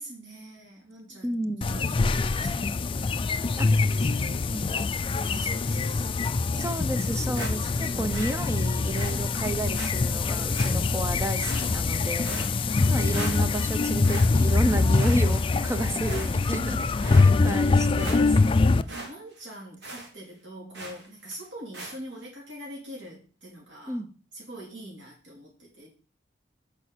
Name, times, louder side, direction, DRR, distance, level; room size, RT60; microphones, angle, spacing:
voice 1, 0.0-4.7 5.2-6.1 7.9-8.3 12.5-13.1 16.1-16.6 18.8-24.0 24.3-25.9, right 1 dB, 85° right, -3 dB, 2.9 m, -44 dB
voice 2, 1.2-1.9 3.6-3.7 4.5-4.6 6.5-18.4 23.9-24.1, right 1 dB, 15° right, 9 dB, 0.7 m, -32 dB
sound 1, 1.6-18.8, left 3 dB, 30° left, 0.4 m, -24 dB
sound 2, 7.3-7.8 8.1-8.4 8.9-9.1 9.7-9.9 10.5-11.0 11.4-11.9 12.2-12.8 13.1-13.7 14.0-14.6 15.0-15.7 16.0-16.5 17.0-17.3 17.7-17.8 18.0-18.5 18.9-19.1 19.4-19.5 19.8-20.1 20.7-21.1 21.7-21.9, right 2 dB, 70° right, 2.0 m, -39 dB
5.9 x 5.4 x 6.6 m, 0.38 s
head